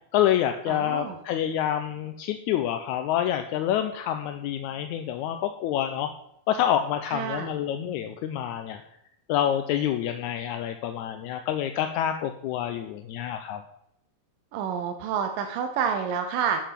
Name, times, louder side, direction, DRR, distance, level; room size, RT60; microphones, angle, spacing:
voice 1, 0.1-6.1 6.5-8.8 9.3-13.6, left 10 dB, 80° left, 8 dB, 1.8 m, -27 dB
voice 2, 0.7-1.2 7.1-7.5 14.5-16.6, right 7 dB, 85° right, 6 dB, 2.5 m, -28 dB
11.5 x 7.2 x 5.8 m, 0.75 s
omnidirectional pair, 3.8 m